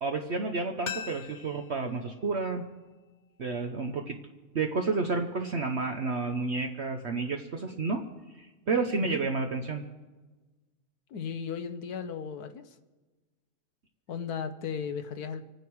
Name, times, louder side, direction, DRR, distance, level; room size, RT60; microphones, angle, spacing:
voice 1, 0.0-2.6 3.4-4.2 4.5-8.0 8.3-9.8, right 4 dB, 50° right, 3 dB, 1.1 m, -30 dB
sound 1, 0.8-3.6 3.9-4.0, left 7 dB, 60° left, 0.5 m, -43 dB
voice 2, 11.1-12.8 14.1-15.5, left 6 dB, 80° left, 9 dB, 1.4 m, -36 dB
26.0 x 9.6 x 4.7 m, 1.2 s
omnidirectional pair, 1.6 m